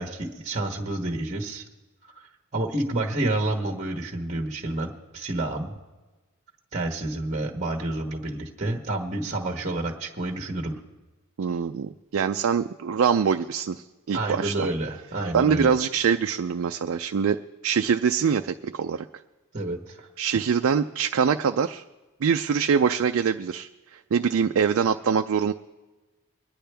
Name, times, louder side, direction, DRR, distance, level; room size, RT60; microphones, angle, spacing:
voice 1, 0.0-1.6 2.5-5.7 6.7-10.8 14.1-15.8 19.5-20.1, right 2 dB, 35° right, 1 dB, 1.1 m, -29 dB
voice 2, 11.4-14.7 15.3-19.1 20.2-21.8 22.2-25.5, right 6 dB, 65° right, 6 dB, 0.4 m, -24 dB
23.5 x 10.5 x 3.4 m, 1.2 s
head